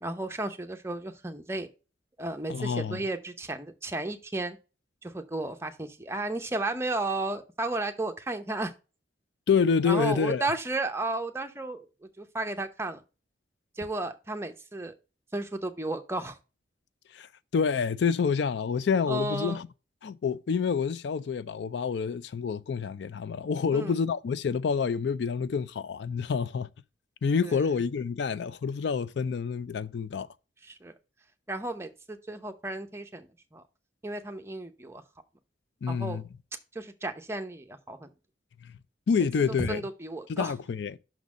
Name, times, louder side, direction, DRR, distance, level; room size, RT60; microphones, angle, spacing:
voice 1, 0.0-1.7 2.2-4.6 5.0-8.7 9.9-13.0 13.8-14.9 15.3-16.4 19.1-19.6 23.7-24.0 27.4-27.6 30.6-30.9 31.5-33.6 34.0-35.0 35.9-36.2 36.7-38.1 39.6-40.5, right 2 dB, 15° right, 0.7 m, -33 dB
voice 2, 2.5-3.0 9.5-10.5 17.1-19.7 20.0-26.7 27.2-30.3 35.8-36.2 38.6-38.8 39.1-39.8 40.3-41.0, left 6 dB, 65° left, 0.4 m, -28 dB
6.1 x 4.0 x 6.1 m
head